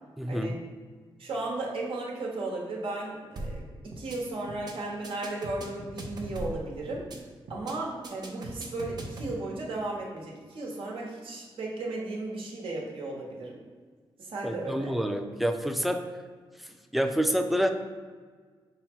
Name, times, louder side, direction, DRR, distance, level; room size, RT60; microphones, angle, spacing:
voice 1, 0.2-0.6 14.4-16.0 16.9-17.7, equal, ahead, 6 dB, 0.4 m, -27 dB
voice 2, 1.2-7.0 7.5-13.5 14.2-15.0, right 2 dB, 75° right, -2 dB, 1.1 m, -35 dB
sound 1, 3.4-3.6 3.9-4.2 4.5-4.7 5.0-6.6 6.9-7.2 7.5-7.7 8.0-9.3, right 2 dB, 50° right, 0.7 m, -39 dB
5.4 x 2.1 x 4.4 m, 1.5 s
cardioid pair, 90°, 9 cm